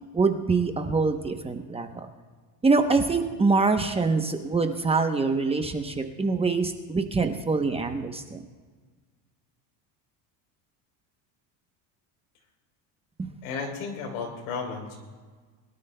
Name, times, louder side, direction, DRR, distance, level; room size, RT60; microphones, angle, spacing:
voice 1, 0.1-2.1 2.6-8.4 13.2-13.3, right 4 dB, 15° right, 6 dB, 0.8 m, -25 dB
voice 2, 13.4-15.0, left 5 dB, 85° left, 2 dB, 3.6 m, -33 dB
22.5 x 12.5 x 2.2 m, 1.5 s
cardioid pair, 130°, 42 cm